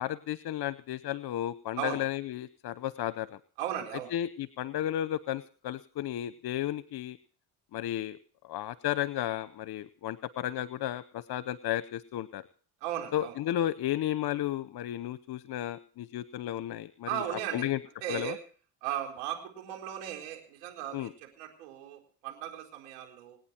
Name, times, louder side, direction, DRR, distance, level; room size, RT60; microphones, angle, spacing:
voice 1, 0.0-3.3 4.1-7.2 7.7-8.2 8.4-12.4 13.1-17.2 17.5-17.8 18.1-18.3 20.9-21.1, left 12 dB, 55° left, 16 dB, 0.9 m, -33 dB
voice 2, 3.6-4.1 12.8-13.3 17.1-17.7 18.0-18.4 18.8-23.4, right 11 dB, 85° right, 2 dB, 4.4 m, -37 dB
27.5 x 9.3 x 4.4 m, 0.43 s
hypercardioid pair, 65°, 47 cm